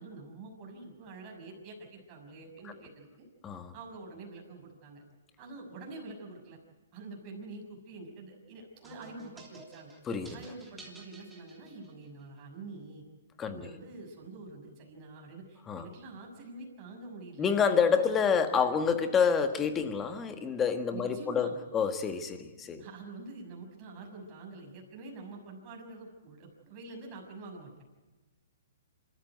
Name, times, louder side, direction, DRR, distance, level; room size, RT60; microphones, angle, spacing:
voice 1, 0.0-3.2 3.7-5.0 5.4-6.6 6.9-9.9 10.3-13.0 13.4-17.5 18.0-18.1 20.9-21.6 22.8-27.8, right 3 dB, 30° right, 0 dB, 6.4 m, -46 dB
sound 1, 8.8-12.2, right 2 dB, 5° right, 3.4 m, -53 dB
voice 2, 10.1-10.4 13.4-13.7 15.7-15.9 17.4-22.8, left 6 dB, 15° left, 8 dB, 1.6 m, -28 dB
25.5 x 14.0 x 9.4 m, 1.2 s
hypercardioid pair, 150°, 0 cm